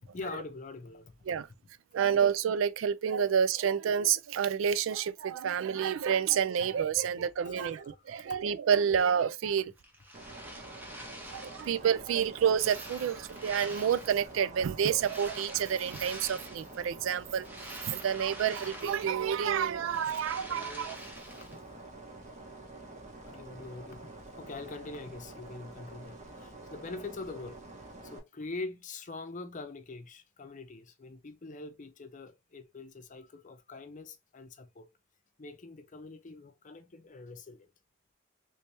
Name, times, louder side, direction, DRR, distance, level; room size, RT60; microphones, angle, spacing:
voice 1, 0.1-1.1 7.4-8.4 20.5-21.8 23.2-24.1 24.4-27.6 28.0-34.9 35.4-37.7, left 3 dB, 40° left, 0.6 m, -44 dB
voice 2, 1.9-9.7 11.3-17.4 17.9-21.0, right 8 dB, 85° right, 0.3 m, -29 dB
sound 1, 9.8-11.8 12.2-14.3 14.9-16.8 17.2-19.4 19.7-21.6, right 1 dB, 10° right, 0.9 m, -46 dB
sound 2, 10.1-28.2, right 2 dB, 40° right, 1.0 m, -48 dB
3.2 x 2.9 x 3.2 m
head